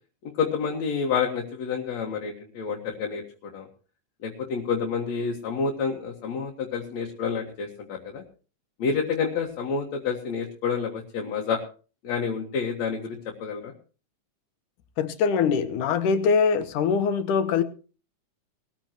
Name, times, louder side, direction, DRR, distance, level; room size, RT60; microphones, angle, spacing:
voice 1, 0.4-3.7 4.2-8.2 8.8-11.6 12.0-13.7, left 6 dB, 60° left, 2.8 m, -29 dB
voice 2, 15.0-17.6, left 6 dB, 75° left, 2.7 m, -23 dB
20.5 x 14.0 x 3.0 m
omnidirectional pair, 3.8 m